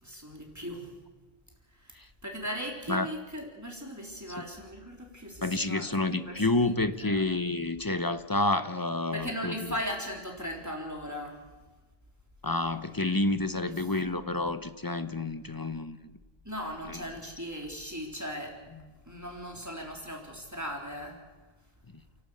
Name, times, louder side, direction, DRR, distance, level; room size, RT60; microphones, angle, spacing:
voice 1, 0.0-0.9 1.7-6.7 7.0-7.3 9.1-11.4 13.6-13.7 16.4-18.6 19.1-21.2, equal, 15° right, 0 dB, 3.7 m, -38 dB
voice 2, 5.4-9.7 12.4-16.0 16.9-17.0, left 2 dB, 20° left, 11 dB, 0.8 m, -29 dB
29.5 x 11.5 x 8.5 m, 1.3 s
omnidirectional pair, 1.0 m